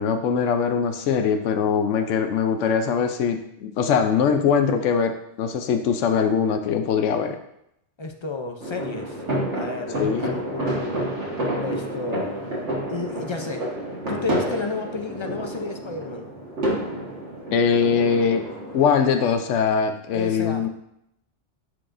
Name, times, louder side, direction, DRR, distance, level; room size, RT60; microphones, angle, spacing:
voice 1, 0.0-7.4 10.0-10.4 17.5-18.4 18.7-20.7, left 6 dB, 90° left, 7 dB, 1.0 m, -22 dB
voice 2, 8.0-9.2 9.5-11.1 11.6-12.5 12.9-13.7 14.1-16.3 20.1-20.7, left 3 dB, 50° left, 4 dB, 0.3 m, -32 dB
sound 1, 8.6-18.9, right 1 dB, 70° right, 1.8 m, -29 dB
10.5 x 4.8 x 2.5 m, 0.78 s
omnidirectional pair, 1.2 m